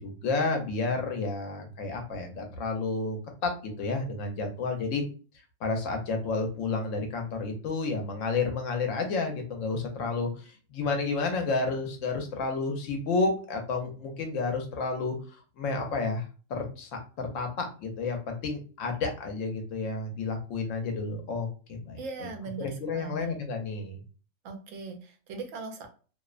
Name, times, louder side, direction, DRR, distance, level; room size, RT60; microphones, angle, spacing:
voice 1, 0.0-5.0 5.6-15.2 15.6-16.2 16.5-22.3 22.6-24.0, left 3 dB, 80° left, 4 dB, 1.0 m, -31 dB
voice 2, 22.0-23.3 24.4-25.9, right 4 dB, 80° right, 4 dB, 1.0 m, -40 dB
2.7 x 2.0 x 2.3 m, 0.38 s
omnidirectional pair, 1.3 m